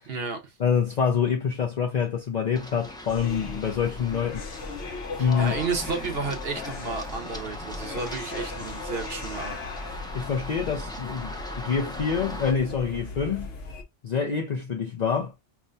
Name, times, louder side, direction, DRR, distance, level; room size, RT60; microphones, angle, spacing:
voice 1, 0.1-0.5 5.2-9.6, right 4 dB, 70° right, 1.3 m, -32 dB
voice 2, 0.6-4.4 5.2-5.6 10.1-13.5 14.0-15.3, left 6 dB, 50° left, 0.7 m, -26 dB
Run, 2.6-12.5, left 1 dB, 5° left, 0.6 m, -40 dB
sound 1, 3.1-13.8, left 4 dB, 85° left, 1.1 m, -38 dB
5.8 x 2.2 x 2.6 m
omnidirectional pair, 1.0 m